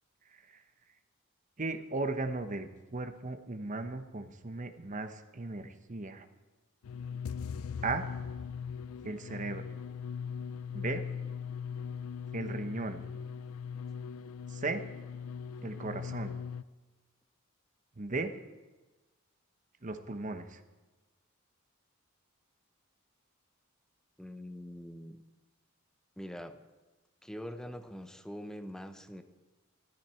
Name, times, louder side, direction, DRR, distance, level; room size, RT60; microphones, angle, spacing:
voice 1, 0.3-0.6 1.6-6.3 7.8-8.1 9.0-9.7 10.7-11.0 12.3-13.0 14.5-14.9 15.6-16.4 18.0-18.3 19.8-20.6, right 3 dB, 35° right, 8 dB, 1.0 m, -36 dB
sound 1, 6.8-16.6, left 6 dB, 75° left, 0.4 m, -40 dB
voice 2, 24.2-25.2 26.2-26.6 27.2-29.2, equal, 5° left, 8 dB, 0.7 m, -43 dB
15.0 x 14.0 x 4.4 m, 1.2 s
head